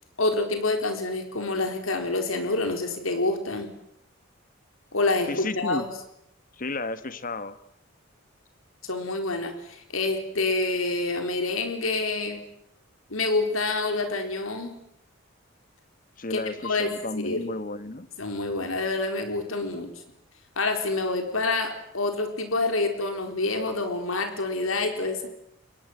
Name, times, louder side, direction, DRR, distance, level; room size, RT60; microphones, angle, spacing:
voice 1, 0.2-3.7 4.9-5.9 8.8-12.4 13.1-14.7 16.3-17.5 18.2-19.9 20.6-25.3, left 3 dB, 80° left, 5 dB, 4.3 m, -27 dB
voice 2, 5.3-5.9 6.6-7.6 16.2-18.1, left 2 dB, 40° left, 13 dB, 1.5 m, -33 dB
29.5 x 23.5 x 8.1 m, 0.76 s
head